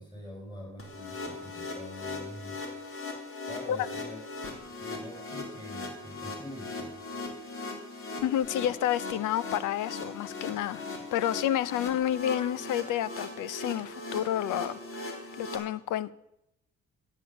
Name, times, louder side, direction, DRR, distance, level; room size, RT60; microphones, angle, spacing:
voice 1, 0.0-2.6 3.5-7.0, left 1 dB, 15° left, 5.4 m, -45 dB
sound 1, 0.8-15.6, left 2 dB, 45° left, 3.9 m, -39 dB
voice 2, 8.2-16.1, left 11 dB, 85° left, 0.7 m, -30 dB
13.5 x 9.1 x 7.2 m
cardioid pair, 90°, 30 cm